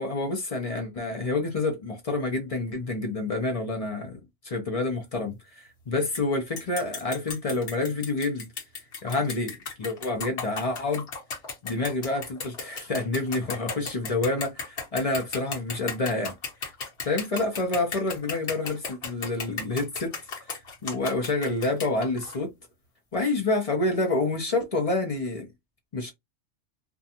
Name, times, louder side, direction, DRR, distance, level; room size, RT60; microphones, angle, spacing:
voice 1, 0.0-8.5 9.0-11.1 11.6-16.3 17.0-20.1 20.8-22.5 23.1-25.5 25.9-26.1, left 2 dB, 40° left, 0.6 m, -28 dB
sound 1, 6.1-6.2 6.6-22.4, left 4 dB, 60° left, 1.2 m, -35 dB
2.5 x 2.3 x 2.7 m
omnidirectional pair, 1.2 m